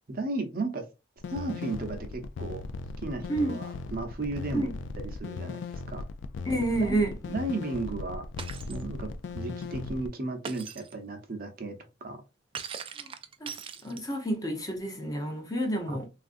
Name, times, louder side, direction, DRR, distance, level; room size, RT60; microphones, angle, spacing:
voice 1, 0.1-0.8 1.3-2.6 3.0-6.0 6.8-7.0 7.3-8.2 8.7-12.2 15.9-16.0, right 2 dB, 50° right, 0.7 m, -35 dB
sound 1, 1.2-10.1, left 4 dB, 75° left, 0.3 m, -38 dB
voice 2, 6.4-7.2 13.0-13.1 13.4-13.6 13.8-16.1, right 1 dB, 20° left, 0.7 m, -29 dB
Shatter, 8.4-8.8 10.4-10.9 12.5-14.3, right 7 dB, 30° right, 0.3 m, -40 dB
3.4 x 2.5 x 2.5 m
head